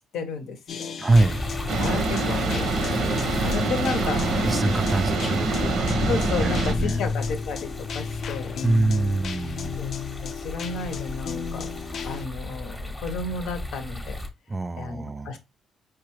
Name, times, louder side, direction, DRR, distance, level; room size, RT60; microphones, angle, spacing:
voice 1, 0.1-0.9 1.8-4.6 6.0-8.6 9.8-9.9 10.2-11.7 12.0-14.2 14.8-15.4, left 4 dB, 85° left, 0.8 m, -33 dB
sound 1, 0.7-12.3, left 6 dB, 60° left, 0.4 m, -34 dB
voice 2, 1.0-1.4 3.3-3.5 4.0-7.0 8.6-9.8 14.5-15.3, right 2 dB, 25° right, 0.3 m, -25 dB
sound 2, 1.1-14.3, left 1 dB, 10° left, 0.7 m, -33 dB
sound 3, 1.7-6.7, right 3 dB, 80° right, 0.8 m, -26 dB
4.8 x 2.3 x 3.0 m
cardioid pair, 90°, 0 cm